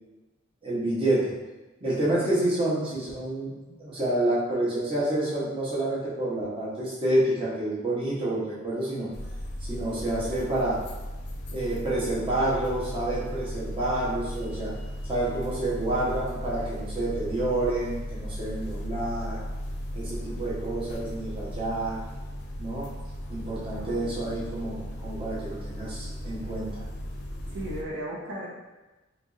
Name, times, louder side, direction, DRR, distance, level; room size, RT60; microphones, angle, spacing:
voice 1, 0.6-1.3 1.8-3.5 3.8-9.1 9.7-10.8 11.5-14.7 15.1-19.4 19.9-22.0 22.6-22.9 23.3-26.8, right 1 dB, 25° right, -8 dB, 0.9 m, -28 dB
sound 1, 9.1-27.8, equal, 55° left, 0.5 m, -36 dB
voice 2, 23.7-24.3 27.5-28.7, right 1 dB, 60° right, -6 dB, 1.0 m, -37 dB
2.9 x 2.6 x 3.8 m, 1.1 s
head